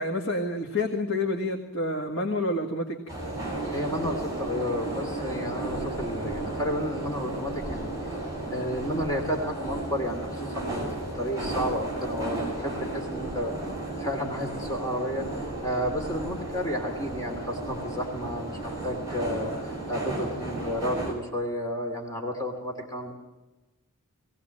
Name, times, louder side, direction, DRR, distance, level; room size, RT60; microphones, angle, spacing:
voice 1, 0.0-3.0, left 2 dB, 65° left, 2 dB, 2.0 m, -28 dB
sound 1, 3.1-21.1, right 2 dB, 15° right, 7.5 m, -34 dB
voice 2, 3.7-7.9 8.5-13.5 14.0-15.2 15.6-23.1, equal, 15° left, 2 dB, 2.7 m, -31 dB
20.5 x 17.5 x 7.7 m, 1.1 s
head